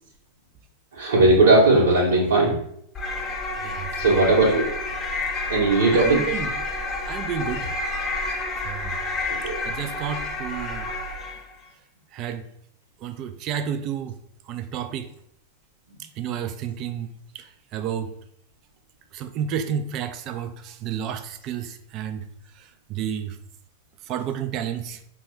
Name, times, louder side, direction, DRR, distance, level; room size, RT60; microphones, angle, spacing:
voice 1, 0.9-2.6 4.0-4.7 5.5-6.2 9.4-9.6, right 2 dB, 65° right, -4 dB, 0.9 m, -18 dB
sound 1, 2.9-11.5, left 2 dB, 20° left, 0.5 m, -30 dB
voice 2, 3.6-4.4 5.9-6.5 7.1-7.7 8.6-9.0 9.6-10.9 12.1-12.4 13.0-14.2 14.5-15.1 16.2-17.1 17.3-18.1 19.1-22.2 22.6-23.4 24.1-25.0, right 8 dB, 35° right, 9 dB, 0.3 m, -31 dB
5.1 x 2.3 x 3.1 m, 0.70 s
figure-of-eight pair, 90°, 0 cm